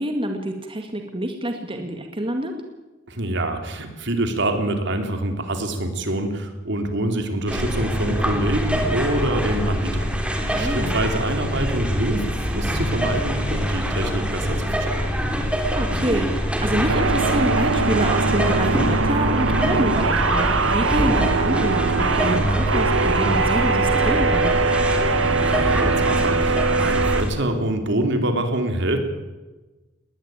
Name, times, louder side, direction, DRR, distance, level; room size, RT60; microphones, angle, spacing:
voice 1, 0.0-2.5 10.5-11.0 15.7-24.5, right 1 dB, 25° right, 4 dB, 2.0 m, -27 dB
voice 2, 3.1-10.1 10.6-15.0 25.4-29.0, right 1 dB, 65° right, 6 dB, 3.4 m, -25 dB
sound 1, 7.5-27.3, equal, 5° right, 3.7 m, -24 dB
sound 2, 16.9-27.2, right 4 dB, 85° right, 1.5 m, -22 dB
20.5 x 19.5 x 9.0 m, 1.2 s
head